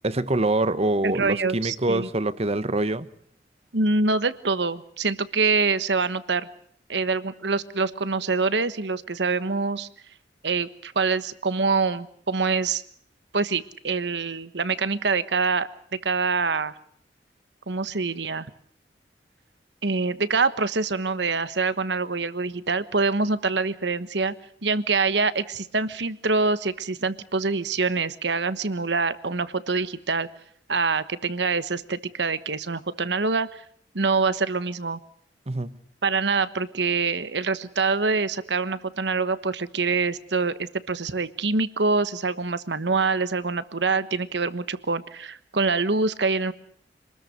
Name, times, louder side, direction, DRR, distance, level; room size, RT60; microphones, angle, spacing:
voice 1, 0.0-3.1 35.5-35.8, right 2 dB, 35° right, 1.1 m, -25 dB
voice 2, 1.0-2.1 3.7-6.5 6.9-9.9 10.4-12.8 13.3-15.7 16.0-16.7 17.7-18.5 19.8-24.3 24.6-30.3 30.7-33.6 33.9-35.0 36.0-46.5, right 4 dB, 75° right, 1.3 m, -25 dB
26.5 x 20.5 x 6.7 m
head